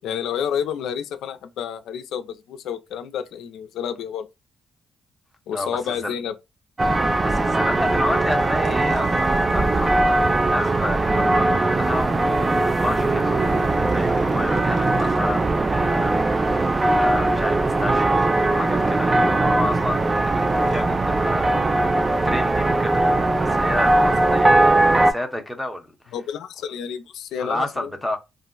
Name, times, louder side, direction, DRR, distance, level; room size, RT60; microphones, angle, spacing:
voice 1, 0.0-4.3 5.5-6.3 26.1-27.9, left 8 dB, 80° left, 0.3 m, -30 dB
voice 2, 5.5-6.1 7.2-21.6 21.9-23.1 23.4-26.1 27.4-28.2, left 1 dB, 5° left, 0.8 m, -31 dB
sound 1, 6.8-25.1, right 2 dB, 25° right, 0.3 m, -20 dB
Breathing, 8.1-9.9 11.3-12.9 13.5-15.3 16.6-18.9 19.7-20.9 22.5-25.3, right 4 dB, 65° right, 0.8 m, -44 dB
2.4 x 2.0 x 3.7 m
cardioid pair, 90°, 0 cm